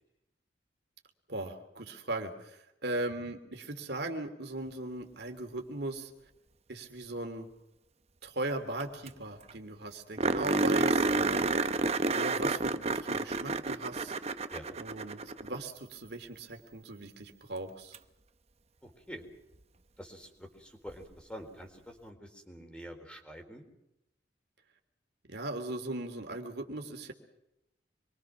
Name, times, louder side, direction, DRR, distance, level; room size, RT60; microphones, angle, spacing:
voice 1, 1.3-6.1 6.7-7.5 8.2-10.9 12.0-14.1 14.8-18.0 25.3-27.1, right 2 dB, 60° right, 4 dB, 3.0 m, -38 dB
sound 1, 8.8-8.9 9.1-9.2 9.5-9.6 10.2-15.6 17.9-18.0 20.9-21.0, right 3 dB, 35° right, 0.9 m, -30 dB
voice 2, 10.5-11.2 14.5-14.8 18.8-19.2 20.0-23.7, equal, 5° left, 3 dB, 4.1 m, -46 dB
26.5 x 23.0 x 6.1 m, 0.86 s
head